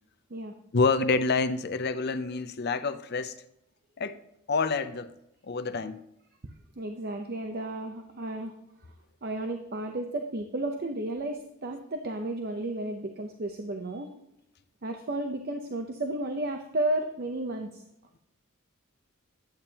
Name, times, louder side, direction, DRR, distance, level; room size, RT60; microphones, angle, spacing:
voice 1, 0.7-3.3 4.0-4.2 4.5-5.1 5.4-6.0, left 4 dB, 50° left, 0.5 m, -27 dB
voice 2, 6.4-8.5 9.2-14.1 14.8-17.8, right 1 dB, 45° right, 0.7 m, -33 dB
10.5 x 8.6 x 2.9 m
head